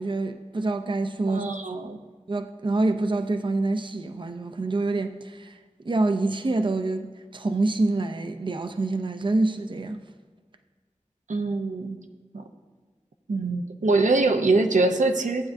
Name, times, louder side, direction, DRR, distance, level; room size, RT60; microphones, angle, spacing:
voice 1, 0.0-1.5 1.8-1.9 2.3-5.6 5.8-10.0, right 2 dB, 40° right, 0.5 m, -26 dB
voice 2, 1.3-2.0 11.3-12.0 12.3-12.4 13.3-15.5, right 3 dB, 85° right, 0.6 m, -23 dB
15.0 x 8.4 x 2.6 m
wide cardioid pair, 55°, 13 cm